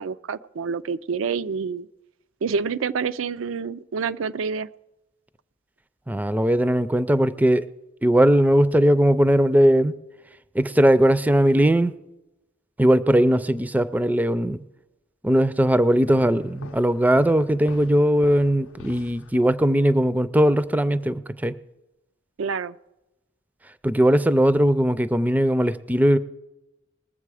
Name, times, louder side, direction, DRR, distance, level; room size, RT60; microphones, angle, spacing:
voice 1, 0.0-1.9 2.4-4.7 22.4-22.8, right 5 dB, 90° right, 13 dB, 0.4 m, -27 dB
voice 2, 6.1-7.7 8.0-9.9 10.5-11.9 12.8-14.6 15.2-21.6 23.8-26.2, right 1 dB, 10° right, 14 dB, 0.4 m, -19 dB
sound 1, 16.1-19.8, left 3 dB, 85° left, 0.6 m, -44 dB
20.5 x 7.5 x 4.8 m, 0.97 s
head